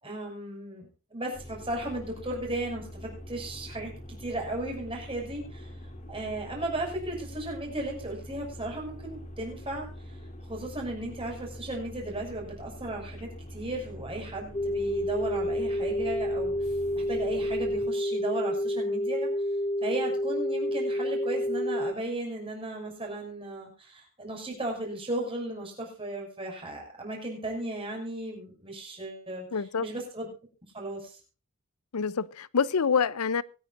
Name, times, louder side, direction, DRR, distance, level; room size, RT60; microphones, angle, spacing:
voice 1, 0.0-3.9 4.2-5.7 6.1-9.9 10.5-16.5 17.0-19.3 19.8-29.5 29.8-30.3 30.7-31.2, right 1 dB, 25° right, 6.2 m, -35 dB
sound 1, 1.3-17.8, equal, 35° left, 3.4 m, -44 dB
sound 2, 14.5-21.9, equal, 20° left, 0.7 m, -29 dB
voice 2, 29.5-29.9 31.9-33.4, left 6 dB, 90° left, 0.6 m, -26 dB
24.0 x 9.9 x 2.6 m
head